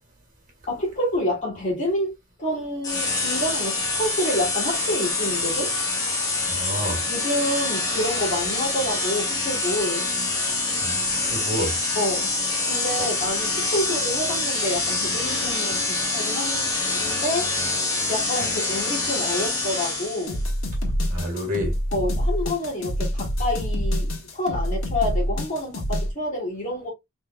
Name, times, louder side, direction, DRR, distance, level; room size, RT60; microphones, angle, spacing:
voice 1, 0.7-5.7 7.1-10.1 11.9-12.3 12.6-17.5 18.1-20.4 21.9-26.9, left 1 dB, 35° left, 2.5 m, -28 dB
sound 1, 2.8-20.4, left 3 dB, 15° left, 1.0 m, -25 dB
voice 2, 6.4-7.0 10.8-11.8 13.0-13.1 18.4-18.5 21.1-21.8, equal, 35° right, 1.8 m, -29 dB
sound 2, 20.3-26.1, equal, 65° left, 1.6 m, -26 dB
4.4 x 3.7 x 2.3 m
head